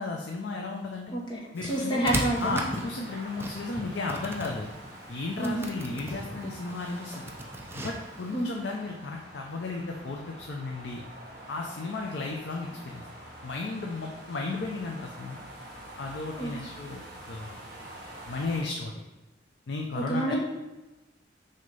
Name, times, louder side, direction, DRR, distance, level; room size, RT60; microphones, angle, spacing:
voice 1, 0.0-1.1 1.5-2.0 2.4-4.7 5.1-7.3 7.7-11.0 11.5-13.1 13.4-15.4 16.0-17.0 17.3-17.6 18.3-18.9 19.7-20.3, left 3 dB, 65° left, 1 dB, 0.5 m, -34 dB
voice 2, 1.1-2.6 5.4-5.7 8.3-8.5 16.4-16.5 19.9-20.4, right 1 dB, 25° left, -4 dB, 1.3 m, -29 dB
sound 1, 1.6-8.4, right 1 dB, 10° right, 0.5 m, -37 dB
sound 2, 2.3-18.6, right 1 dB, 50° right, 2.0 m, -46 dB
6.3 x 2.8 x 5.3 m, 1.1 s
head